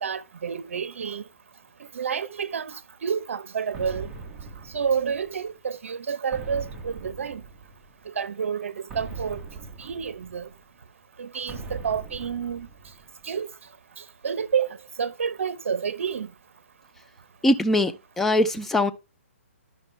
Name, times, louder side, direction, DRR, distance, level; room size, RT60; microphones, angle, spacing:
voice 1, 0.0-1.2 1.9-4.1 4.7-7.4 8.1-9.4 9.8-10.5 11.2-12.7 13.2-13.5 14.0-16.3, right 7 dB, 70° right, 0.8 m, -29 dB
sound 1, 3.7-5.5 6.3-8.0 8.9-10.7 11.5-13.3, right 4 dB, 15° right, 1.2 m, -40 dB
voice 2, 17.4-18.9, left 1 dB, 5° left, 0.5 m, -22 dB
11.5 x 5.3 x 3.3 m
hypercardioid pair, 155°, 7 cm